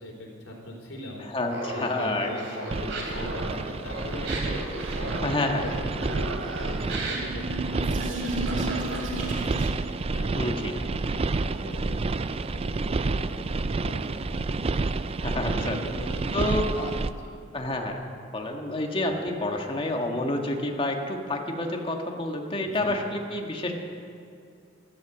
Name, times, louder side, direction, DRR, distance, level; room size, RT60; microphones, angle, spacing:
voice 1, 0.0-1.3 1.7-16.8 17.0-17.3 19.2-19.3 22.7-22.9, left 1 dB, 85° left, -1 dB, 3.9 m, -40 dB
voice 2, 1.3-2.3 5.2-5.6 10.3-10.7 15.2-15.8 16.3-16.9 17.5-18.0 18.3-23.7, left 1 dB, 30° left, 2 dB, 1.5 m, -29 dB
Laughter, 1.5-9.5, right 1 dB, 70° right, 3.1 m, -36 dB
sound 1, 2.7-17.1, right 3 dB, 30° right, 0.4 m, -29 dB
sound 2, 7.1-10.0, right 2 dB, 85° right, 2.6 m, -35 dB
13.5 x 13.0 x 7.2 m, 2.4 s
head